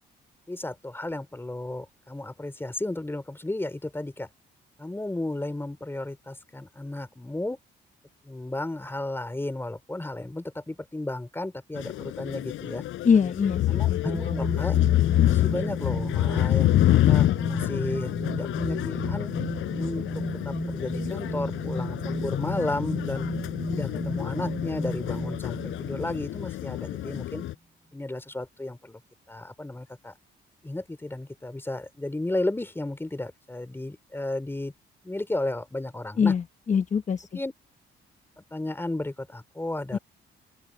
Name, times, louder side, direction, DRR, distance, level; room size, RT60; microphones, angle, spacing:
voice 1, 0.5-4.3 4.8-7.6 8.2-12.8 13.7-14.8 15.3-19.3 19.8-20.1 20.4-23.3 23.7-27.4 27.9-29.0 29.3-30.1 30.6-34.7 35.0-36.3 37.3-37.5 38.4-40.0, left 2 dB, 10° left, 3.2 m, -33 dB
sound 1, 11.7-27.5, left 15 dB, 90° left, 4.1 m, -27 dB
voice 2, 13.0-13.6 13.9-14.4 36.2-37.3 39.9-40.0, left 6 dB, 40° left, 1.0 m, -24 dB
sound 2, 14.0-26.9, right 1 dB, 5° right, 5.1 m, -34 dB
open air
cardioid pair, 90°, 20 cm